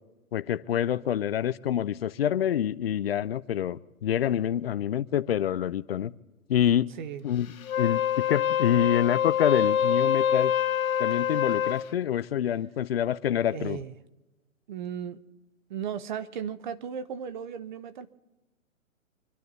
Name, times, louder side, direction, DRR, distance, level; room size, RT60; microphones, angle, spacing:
voice 1, 0.3-6.1 6.5-6.9 7.2-10.5 11.0-13.8, left 10 dB, 45° left, 16 dB, 0.6 m, -27 dB
Wind instrument woodwind instrument, 7.6-11.9, left 9 dB, 85° left, 0.9 m, -25 dB
voice 2, 13.5-13.9 14.7-15.2 15.7-18.1, right 8 dB, 35° right, 13 dB, 0.9 m, -36 dB
25.5 x 12.0 x 4.1 m, 1.0 s
hypercardioid pair, 145°, 41 cm